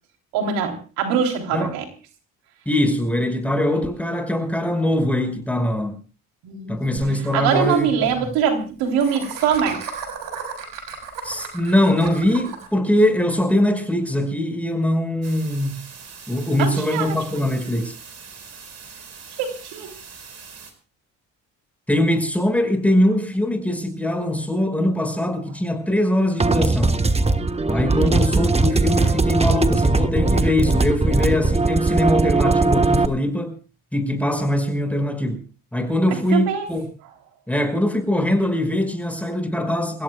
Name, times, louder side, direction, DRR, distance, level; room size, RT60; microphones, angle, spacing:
voice 1, 0.3-1.8 6.4-6.8 7.3-9.8 16.6-17.4 19.4-19.9 27.9-28.1 36.1-36.7, right 7 dB, 85° right, 3.4 m, -23 dB
voice 2, 2.7-6.0 6.7-8.1 11.2-15.8 16.3-17.9 21.9-26.9 27.7-33.6 33.9-35.4 35.7-36.8 37.5-40.0, left 1 dB, 5° left, 5.3 m, -22 dB
Laughter, 7.0-7.1 7.3-7.4 7.6-7.8 9.0-12.7, right 6 dB, 70° right, 6.6 m, -34 dB
sound 1, 15.2-20.7, right 5 dB, 45° right, 5.1 m, -42 dB
sound 2, 26.4-33.1, right 3 dB, 15° right, 1.3 m, -19 dB
29.5 x 16.0 x 2.3 m
supercardioid pair, 75°, 35 cm